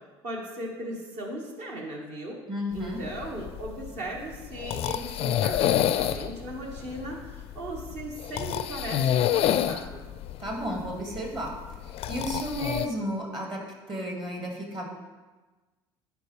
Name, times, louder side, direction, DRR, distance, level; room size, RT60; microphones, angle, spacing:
voice 1, 0.2-2.4 2.7-10.1, right 1 dB, 55° right, -1 dB, 1.8 m, -37 dB
voice 2, 2.5-3.0 10.4-11.5 11.9-13.6 13.9-14.9, equal, 35° right, 0 dB, 2.2 m, -33 dB
sound 1, 2.8-12.9, left 11 dB, 45° left, 0.4 m, -29 dB
10.5 x 4.7 x 3.4 m, 1.2 s
hypercardioid pair, 65°, 13 cm